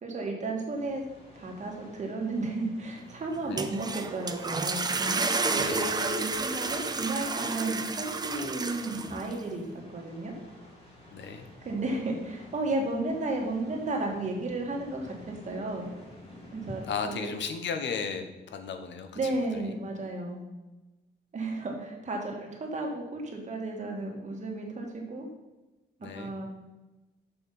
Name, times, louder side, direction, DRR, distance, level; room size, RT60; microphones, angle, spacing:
voice 1, 0.0-1.0 1.4-10.3 11.6-15.9 16.5-17.3 19.2-20.4 21.3-25.3 26.1-26.5, right 2 dB, 40° right, 0 dB, 1.8 m, -33 dB
sound 1, 0.7-16.9, left 1 dB, 30° left, 2.2 m, -52 dB
sound 2, 3.3-9.4, right 4 dB, 20° right, 0.5 m, -31 dB
voice 2, 5.6-5.9 11.1-11.5 16.8-19.7 26.0-26.3, left 6 dB, 85° left, 7 dB, 1.0 m, -35 dB
6.9 x 5.8 x 5.4 m, 1.1 s
wide cardioid pair, 155°, 18 cm